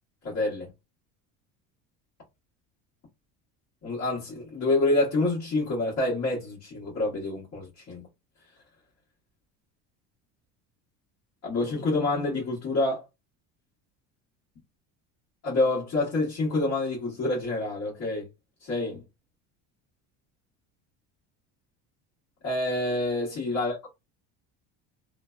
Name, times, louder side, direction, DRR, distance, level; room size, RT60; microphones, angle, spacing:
voice 1, 0.2-0.7 3.8-8.1 11.4-13.0 15.4-18.3 18.6-19.0 22.4-23.9, left 2 dB, 50° left, 1.3 m, -27 dB
2.5 x 2.2 x 2.3 m
cardioid pair, 135°, 34 cm